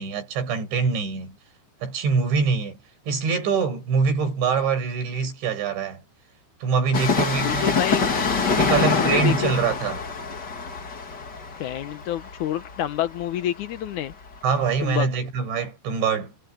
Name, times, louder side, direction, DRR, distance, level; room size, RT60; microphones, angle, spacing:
voice 1, 0.0-1.4 1.8-2.8 3.1-6.0 6.6-7.8 8.6-10.0 14.4-16.3, right 5 dB, 90° right, 8.0 m, -24 dB
Train, 6.9-14.4 14.6-14.7, left 5 dB, 35° left, 1.9 m, -25 dB
voice 2, 7.4-8.2 8.7-9.5 11.6-14.1 14.8-15.1, left 11 dB, 85° left, 1.7 m, -28 dB
omnidirectional pair, 5.1 m